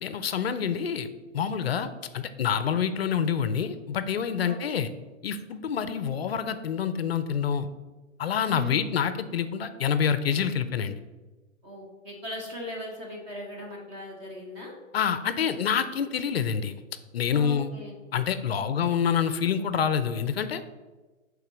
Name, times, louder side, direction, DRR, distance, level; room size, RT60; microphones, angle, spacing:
voice 1, 0.0-4.9 5.2-7.7 8.2-11.0 14.9-16.8 17.1-17.7 18.1-20.7, left 7 dB, 50° left, 11 dB, 0.5 m, -27 dB
voice 2, 4.4-4.8 8.4-8.9 11.6-14.7 17.3-18.0, equal, 20° right, -1 dB, 1.3 m, -39 dB
5.8 x 3.8 x 6.0 m, 1.2 s
hypercardioid pair, 165°, 40 cm